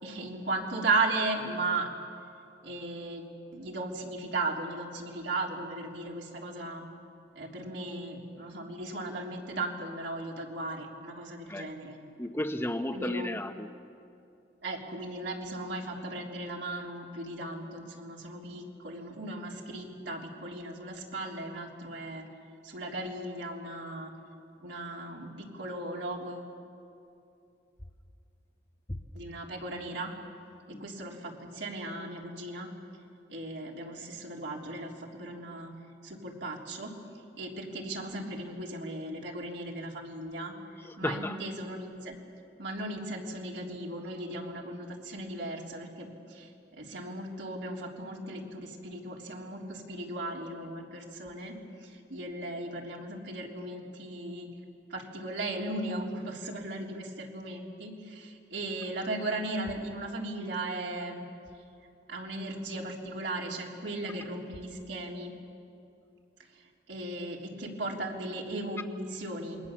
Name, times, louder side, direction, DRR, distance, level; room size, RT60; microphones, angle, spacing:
voice 1, 0.0-1.9 2.6-6.8 7.4-12.0 12.9-13.3 14.6-22.2 22.6-24.1 24.6-26.5 29.1-30.1 30.7-32.7 33.3-35.7 36.0-36.9 37.4-40.5 41.0-42.2 42.6-54.5 54.9-61.2 62.1-65.3 66.9-69.6, right 2 dB, 75° right, -1 dB, 3.5 m, -36 dB
voice 2, 12.2-13.7 30.7-30.8 40.8-41.4, left 1 dB, 15° left, 6 dB, 0.8 m, -33 dB
27.5 x 22.0 x 7.2 m, 2.6 s
head